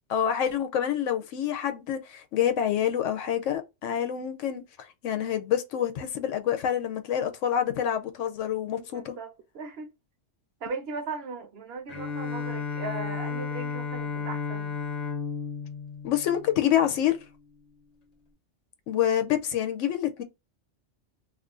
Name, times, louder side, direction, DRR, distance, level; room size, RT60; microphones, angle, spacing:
voice 1, 0.1-9.2 16.0-17.2 18.9-20.2, left 10 dB, 90° left, 0.9 m, -27 dB
voice 2, 8.8-9.9 10.6-14.8, right 4 dB, 60° right, 0.9 m, -38 dB
Bowed string instrument, 11.9-17.2, left 6 dB, 40° left, 0.8 m, -33 dB
2.5 x 2.4 x 3.6 m
omnidirectional pair, 1.2 m